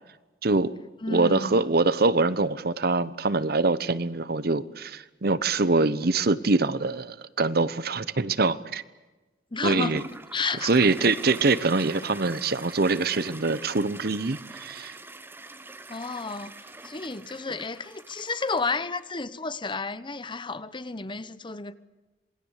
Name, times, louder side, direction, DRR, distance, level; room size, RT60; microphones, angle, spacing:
voice 1, 0.4-0.8 1.1-8.8 9.6-10.0 10.6-15.0, right 3 dB, 60° right, 1.0 m, -24 dB
voice 2, 1.0-1.6 9.5-10.0 10.3-10.7 15.9-16.5 16.8-21.7, left 4 dB, 30° left, 1.0 m, -31 dB
Toilet flush, 9.8-19.0, right 2 dB, 15° right, 1.1 m, -43 dB
27.5 x 21.5 x 8.3 m
head